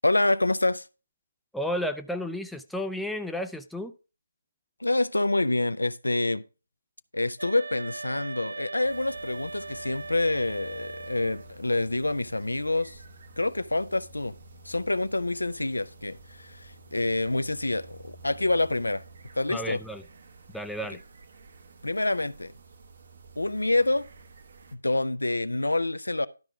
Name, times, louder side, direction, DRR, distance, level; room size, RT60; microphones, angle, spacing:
voice 1, 0.0-0.9 4.8-6.4 7.1-13.0 13.4-14.3 14.6-19.0 19.4-19.8 21.8-22.5 23.4-24.1 24.7-26.3, left 2 dB, 90° left, 0.5 m, -27 dB
voice 2, 1.5-3.9 19.5-20.0 20.5-21.0, equal, ahead, 0.4 m, -32 dB
sound 1, 7.4-11.5, right 3 dB, 75° right, 0.5 m, -39 dB
sound 2, 8.8-24.8, right 2 dB, 55° right, 1.1 m, -50 dB
12.0 x 4.7 x 3.5 m
figure-of-eight pair, 150°, 0 cm